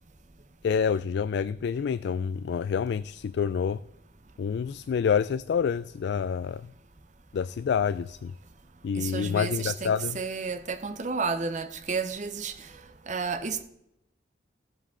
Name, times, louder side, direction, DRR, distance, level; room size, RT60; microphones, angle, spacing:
voice 1, 0.6-3.8 4.4-6.7 7.3-8.3 8.8-10.2, left 6 dB, 65° left, 0.3 m, -27 dB
voice 2, 8.9-12.7 13.1-13.6, right 5 dB, 40° right, 0.9 m, -31 dB
15.0 x 7.5 x 3.7 m
head